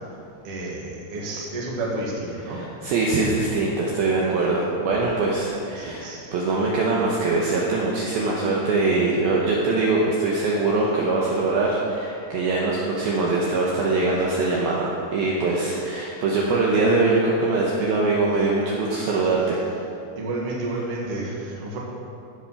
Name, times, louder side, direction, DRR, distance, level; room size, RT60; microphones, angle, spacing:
voice 1, 0.4-2.6 5.8-6.2 20.1-21.8, right 2 dB, 50° right, -4 dB, 1.8 m, -30 dB
voice 2, 2.5-19.6, right 3 dB, 75° right, -3 dB, 2.4 m, -22 dB
15.0 x 6.0 x 5.6 m, 2.6 s
omnidirectional pair, 5.2 m